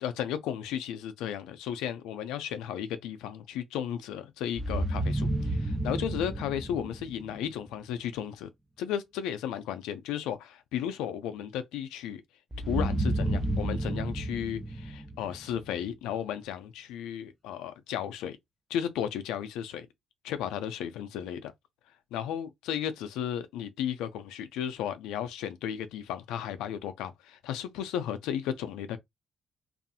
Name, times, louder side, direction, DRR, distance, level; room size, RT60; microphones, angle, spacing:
voice 1, 0.0-8.5 8.8-12.2 12.7-18.4 18.7-19.9 20.2-21.5 22.1-29.0, left 9 dB, 85° left, 0.4 m, -34 dB
sound 1, 4.6-7.5 12.5-15.7, right 1 dB, 15° right, 0.4 m, -31 dB
2.6 x 2.4 x 2.6 m
supercardioid pair, 55°, 0 cm